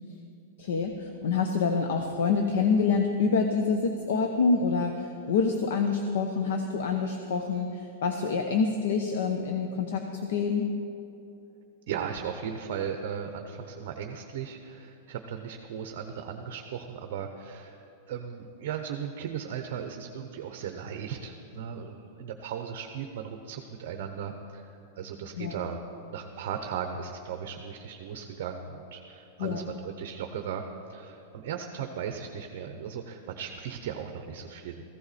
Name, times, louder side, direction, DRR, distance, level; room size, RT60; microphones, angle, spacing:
voice 1, 0.6-10.7 25.4-25.5 29.4-29.7, left 5 dB, 65° left, 5 dB, 0.8 m, -27 dB
voice 2, 11.9-17.8 18.1-25.8 26.1-30.6 30.9-34.8, right 7 dB, 45° right, 5 dB, 0.8 m, -37 dB
15.0 x 15.0 x 4.2 m, 2.8 s
supercardioid pair, 180°, 0 cm